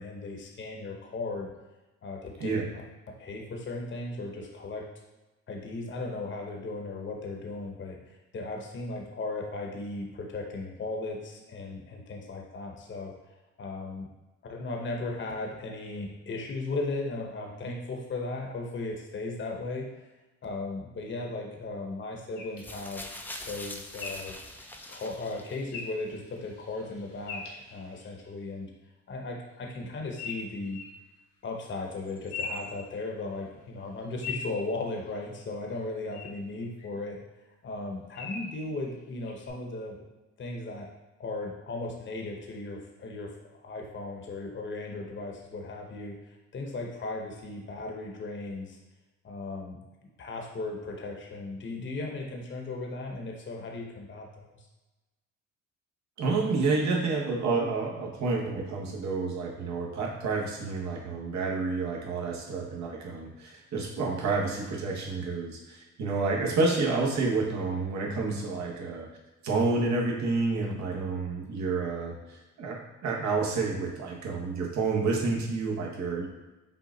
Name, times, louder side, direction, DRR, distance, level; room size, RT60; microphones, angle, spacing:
voice 1, 0.0-1.5 2.0-2.6 3.2-4.9 5.5-13.1 13.6-14.1 14.4-20.1 20.4-23.1 23.4-24.4 24.9-28.7 29.1-30.8 31.4-37.2 37.6-40.1 40.4-40.9 41.2-48.8 49.2-49.8 50.2-54.6, left 2 dB, 40° left, 0 dB, 0.9 m, -36 dB
sound 1, 22.4-28.2 30.2-30.9 32.0-33.4 33.8-35.5 36.1-36.3 36.8-36.9 38.1-38.6 39.3-39.5, left 4 dB, 80° left, 1.1 m, -42 dB
sound 2, 22.6-25.8 26.7-26.8, left 1 dB, 5° left, 0.4 m, -43 dB
voice 2, 56.2-69.1 69.4-76.3, right 3 dB, 65° right, -1 dB, 1.2 m, -29 dB
5.6 x 2.4 x 3.9 m, 1.1 s
cardioid pair, 90°, 30 cm